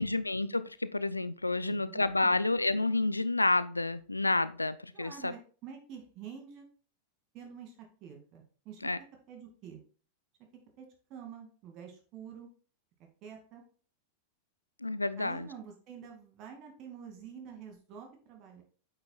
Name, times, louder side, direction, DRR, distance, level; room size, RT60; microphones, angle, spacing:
voice 1, 0.0-5.3 8.8-9.0 14.8-15.5, left 2 dB, 85° left, 0.3 m, -29 dB
voice 2, 1.6-2.4 4.9-6.6 7.3-8.8 9.3-9.8 10.8-12.5 13.2-13.6 15.2-18.6, right 7 dB, 40° right, 2.1 m, -48 dB
8.6 x 5.9 x 2.3 m
figure-of-eight pair, 90°, 0 cm